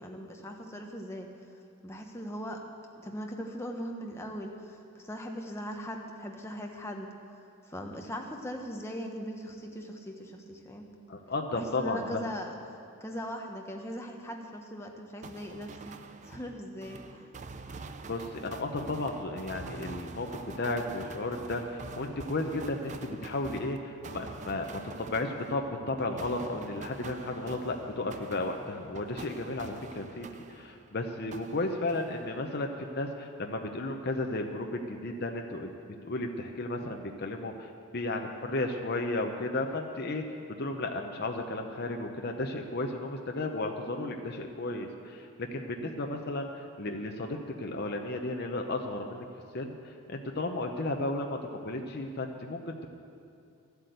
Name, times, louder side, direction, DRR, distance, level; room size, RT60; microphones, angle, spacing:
voice 1, 0.0-2.6 3.0-7.1 7.6-10.9 11.5-17.2 45.8-45.9, equal, 10° left, 2 dB, 1.0 m, -40 dB
voice 2, 11.1-12.2 17.7-17.8 18.1-35.7 36.0-40.2 40.6-49.2 49.5-52.9, left 2 dB, 45° left, 3 dB, 0.8 m, -34 dB
sound 1, 15.2-31.0 31.3-32.7, right 3 dB, 35° right, 0.4 m, -46 dB
12.5 x 8.2 x 8.0 m, 2.6 s
head